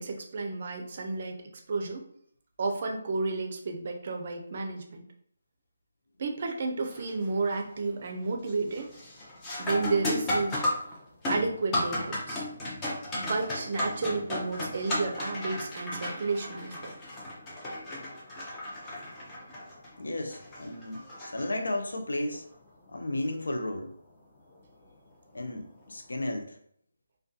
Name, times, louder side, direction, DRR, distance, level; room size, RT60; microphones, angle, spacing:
voice 1, 0.0-1.4 1.7-2.0 2.6-5.1 6.2-8.9 9.6-10.6 11.3-12.4 13.1-16.9, right 3 dB, 45° right, 3 dB, 0.4 m, -31 dB
sound 1, 6.9-7.3 7.7-8.1 8.5-22.0 24.5-24.6 25.4-25.7, left 1 dB, 15° left, 0.5 m, -35 dB
voice 2, 20.0-22.4 22.9-23.9 25.3-26.6, left 1 dB, 80° left, 4 dB, 0.5 m, -33 dB
2.3 x 2.2 x 2.6 m, 0.66 s
figure-of-eight pair, 160°, 0 cm